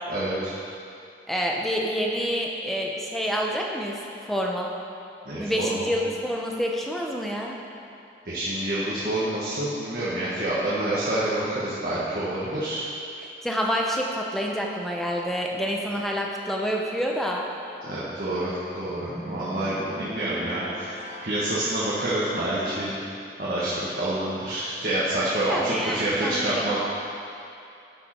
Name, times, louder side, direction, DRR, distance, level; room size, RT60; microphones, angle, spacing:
voice 1, 0.1-0.5 5.2-5.9 8.2-12.8 17.8-21.0 21.2-22.9 23.4-26.8, right 1 dB, 55° right, -9 dB, 1.4 m, -27 dB
voice 2, 1.3-4.7 5.4-7.6 13.2-17.4 25.5-26.8, equal, ahead, -1 dB, 0.7 m, -28 dB
sound 1, 18.8-21.8, equal, 15° right, 1.2 m, -39 dB
10.5 x 5.5 x 4.4 m, 2.6 s
head